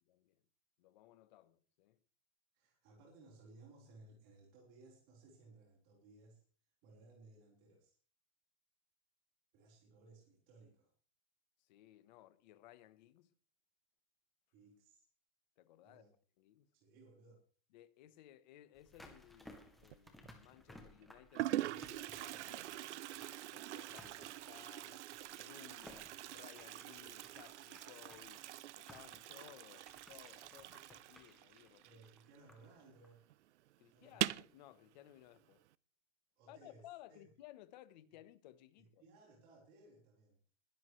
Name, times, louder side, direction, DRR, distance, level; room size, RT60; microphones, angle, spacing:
voice 1, 0.1-0.4 0.8-2.0 11.6-13.3 15.6-16.0 16.4-16.7 17.7-22.8 23.5-25.0 25.3-28.5 28.8-32.0 33.8-35.6 36.5-39.0, left 14 dB, 35° left, 1.0 m, -60 dB
voice 2, 2.5-6.4 6.8-8.0 9.5-10.9 14.5-15.1 15.8-16.1 16.7-17.4 31.8-33.2 33.9-34.2 36.4-37.3 38.8-40.4, right 3 dB, 30° right, 4.1 m, -62 dB
sound 1, 18.7-32.8 33.0-33.1, left 1 dB, ahead, 0.6 m, -61 dB
Toilet flush, 19.8-20.3 21.0-21.1 21.3-32.6 32.9-33.0 33.3-33.4 34.1-34.6, right 14 dB, 60° right, 0.5 m, -44 dB
21.0 x 12.5 x 3.2 m
supercardioid pair, 180°, 41 cm